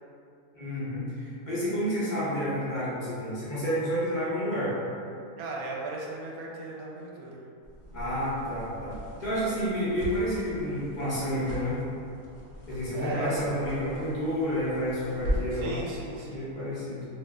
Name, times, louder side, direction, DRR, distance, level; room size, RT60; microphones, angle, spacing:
voice 1, 0.5-4.7 7.9-11.8 12.7-15.8 16.2-17.1, equal, 40° left, -10 dB, 0.8 m, -30 dB
voice 2, 5.4-7.4 9.4-9.5 12.9-13.4 15.5-16.5, right 3 dB, 80° right, -3 dB, 1.0 m, -37 dB
sound 1, 7.6-15.7, equal, 65° left, 0.9 m, -39 dB
2.7 x 2.1 x 3.5 m, 2.5 s
omnidirectional pair, 1.6 m